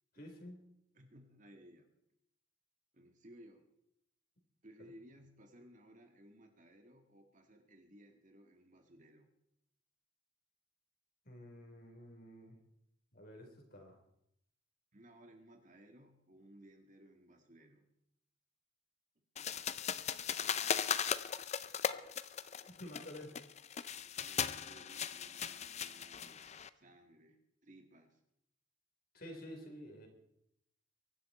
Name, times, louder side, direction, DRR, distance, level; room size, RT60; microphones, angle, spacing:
voice 1, 0.1-0.6 4.8-4.9 11.2-12.6 13.1-14.0 22.8-23.4 29.1-30.1, equal, 50° left, 3 dB, 4.0 m, -50 dB
voice 2, 0.9-1.9 2.9-3.7 4.6-9.3 14.9-17.9 24.0-28.2, right 1 dB, 40° right, 4 dB, 2.0 m, -60 dB
sound 1, 19.4-26.7, left 8 dB, 35° left, 0.5 m, -38 dB
23.5 x 12.0 x 4.4 m, 0.77 s
head